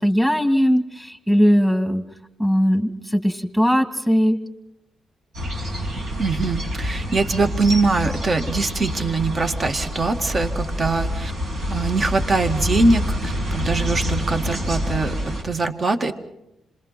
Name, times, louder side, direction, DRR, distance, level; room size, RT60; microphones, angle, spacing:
voice 1, 0.0-2.0 2.4-4.4, equal, 5° right, 7 dB, 2.3 m, -19 dB
sound 1, 5.3-15.4, equal, 80° right, 5.7 m, -27 dB
voice 2, 6.2-11.3 11.7-16.1, right 3 dB, 45° right, 6 dB, 2.0 m, -22 dB
26.5 x 21.5 x 5.9 m, 0.88 s
supercardioid pair, 55°, 0 cm